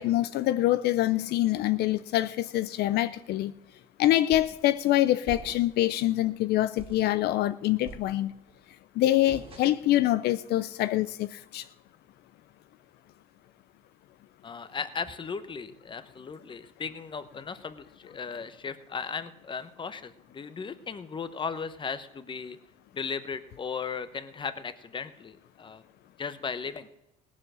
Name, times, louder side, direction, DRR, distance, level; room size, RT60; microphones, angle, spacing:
voice 1, 0.0-3.5 4.0-8.3 9.0-11.7, left 14 dB, 75° left, 13 dB, 0.5 m, -25 dB
sound 1, 4.3-4.7 5.3-5.9 6.3-6.4 6.8-7.1 7.8-8.5 9.3-10.0, right 4 dB, 35° right, 2.2 m, -45 dB
voice 2, 14.4-22.6 22.9-25.8 26.2-26.9, left 5 dB, 30° left, 12 dB, 0.9 m, -36 dB
18.0 x 7.5 x 6.3 m, 0.92 s
cardioid pair, 110°, 17 cm